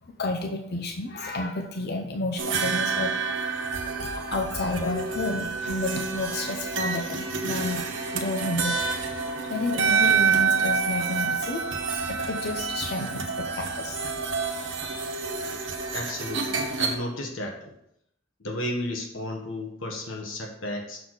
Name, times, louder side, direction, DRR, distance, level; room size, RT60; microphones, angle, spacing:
voice 1, 0.0-3.6 4.2-7.8 8.1-9.2 9.5-14.1, left 2 dB, 55° left, 3 dB, 0.6 m, -31 dB
sound 1, 2.4-17.0, right 5 dB, 65° right, 1.1 m, -28 dB
voice 2, 15.9-17.7 18.4-21.0, left 1 dB, 70° left, 2 dB, 1.2 m, -33 dB
6.8 x 4.0 x 6.3 m, 0.74 s
head